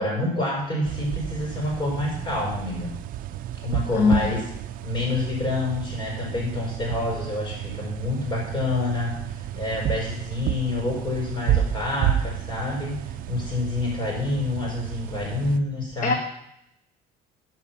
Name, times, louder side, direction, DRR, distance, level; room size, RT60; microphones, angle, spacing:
voice 1, 0.0-2.9 3.6-4.5 4.8-13.0 13.3-16.2, left 2 dB, 25° left, -1 dB, 4.7 m, -28 dB
sound 1, 0.9-15.6, right 11 dB, 50° right, 0.5 m, -31 dB
voice 2, 3.9-4.3 16.0-16.1, left 4 dB, 45° left, 5 dB, 1.0 m, -20 dB
13.0 x 5.7 x 5.9 m, 0.77 s
cardioid pair, 155°, 18 cm